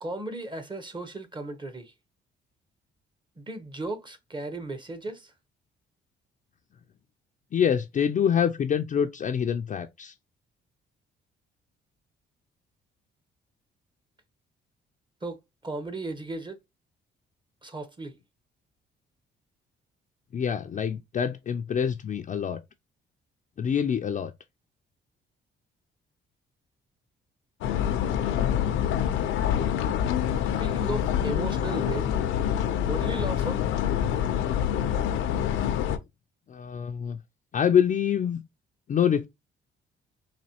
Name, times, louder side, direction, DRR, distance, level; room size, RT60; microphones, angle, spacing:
voice 1, 0.0-1.9 3.4-5.3 15.2-16.6 17.6-18.2 30.6-32.1 32.8-33.6, right 2 dB, 25° right, 0.8 m, -35 dB
voice 2, 7.5-10.1 20.3-22.6 23.6-24.3 36.5-37.2 37.5-38.4 38.9-39.3, left 8 dB, 40° left, 0.4 m, -25 dB
sound 1, 27.6-36.0, left 9 dB, 85° left, 0.6 m, -26 dB
4.1 x 2.7 x 2.8 m
cardioid pair, 90°, 20 cm